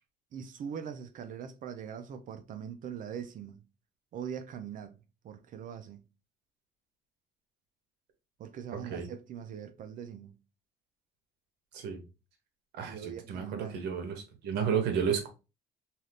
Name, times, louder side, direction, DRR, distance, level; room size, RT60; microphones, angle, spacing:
voice 1, 0.3-3.6 4.1-5.0 5.2-6.1 8.4-10.4 12.8-13.8, right 8 dB, 55° right, 0.4 m, -42 dB
voice 2, 12.7-15.3, right 7 dB, 85° right, 0.9 m, -32 dB
2.7 x 2.4 x 3.2 m
cardioid pair, 110°, 17 cm